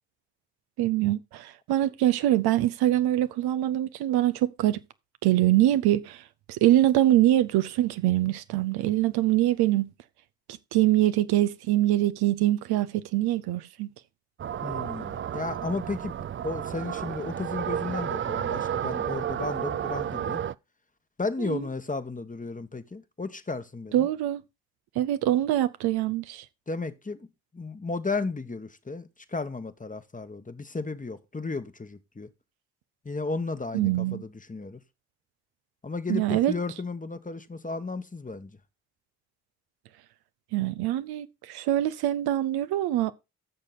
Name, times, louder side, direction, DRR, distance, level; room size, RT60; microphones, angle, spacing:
voice 1, 0.8-4.8 5.2-6.2 6.5-9.9 10.7-13.9 21.4-21.6 23.9-24.4 25.0-26.4 33.7-34.2 36.1-36.5 40.5-43.1, right 14 dB, 75° right, 0.7 m, -24 dB
sound 1, 14.4-20.5, right 9 dB, 35° right, 0.4 m, -32 dB
voice 2, 14.6-16.1 16.4-20.4 21.2-24.1 26.7-27.3 27.5-32.3 33.0-34.8 35.8-38.5, left 3 dB, 20° left, 1.1 m, -34 dB
12.0 x 6.6 x 4.0 m
hypercardioid pair, 40°, 38 cm